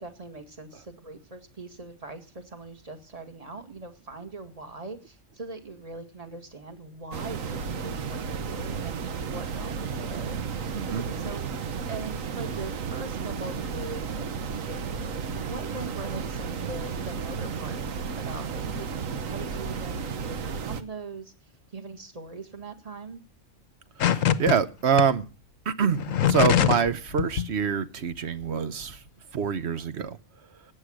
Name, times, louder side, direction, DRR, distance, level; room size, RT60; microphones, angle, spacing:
voice 1, 0.0-10.4 10.9-11.5 11.9-15.0 15.4-18.9 19.1-21.3 21.7-23.2, right 3 dB, 30° right, 7 dB, 1.8 m, -41 dB
sound 1, 7.1-20.8, right 6 dB, 85° right, 1.4 m, -33 dB
sound 2, 24.0-24.6 25.0-25.1 25.9-26.9 27.2-27.5, left 10 dB, 85° left, 1.3 m, -22 dB
voice 2, 24.0-25.3 25.7-29.0 29.3-30.2, right 7 dB, 60° right, 13 dB, 1.1 m, -26 dB
17.5 x 8.5 x 6.3 m, 0.35 s
omnidirectional pair, 1.3 m